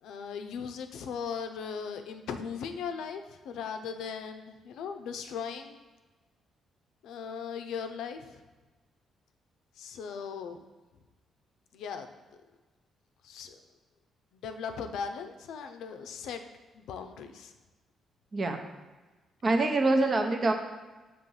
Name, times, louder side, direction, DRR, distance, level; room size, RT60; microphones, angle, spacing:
voice 1, 0.0-5.8 7.0-8.4 9.8-10.6 11.7-12.1 13.2-13.6 14.3-16.4 16.7-17.5, left 6 dB, 80° left, 7 dB, 0.5 m, -38 dB
voice 2, 19.4-20.5, right 2 dB, 40° right, 4 dB, 0.8 m, -25 dB
6.0 x 3.0 x 5.5 m, 1.2 s
cardioid pair, 90°, 0 cm